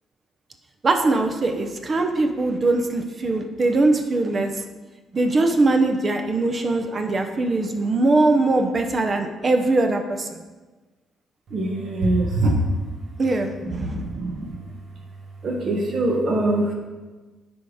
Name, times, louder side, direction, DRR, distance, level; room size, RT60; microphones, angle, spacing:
voice 1, 0.8-4.6 5.1-10.4 13.2-14.0, right 2 dB, 40° right, 5 dB, 0.7 m, -21 dB
voice 2, 11.5-12.5 13.6-14.6 15.4-16.7, right 2 dB, 55° right, 1 dB, 1.2 m, -23 dB
10.0 x 3.5 x 4.9 m, 1.2 s
cardioid pair, 90°, 0 cm